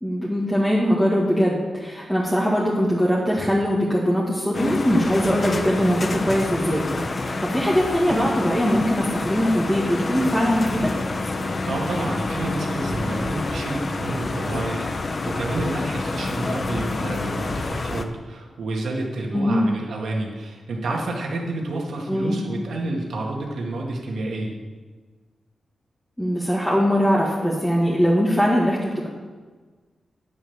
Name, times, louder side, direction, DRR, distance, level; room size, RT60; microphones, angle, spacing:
voice 1, 0.0-6.9 7.1-10.9 19.3-19.6 22.1-22.4 26.2-29.1, equal, 5° left, -5 dB, 1.9 m, -21 dB
sound 1, 4.5-18.0, left 2 dB, 40° left, 0.8 m, -28 dB
voice 2, 11.6-24.5, right 2 dB, 80° right, -1 dB, 2.2 m, -29 dB
10.0 x 7.1 x 7.3 m, 1.4 s
cardioid pair, 90°, 0 cm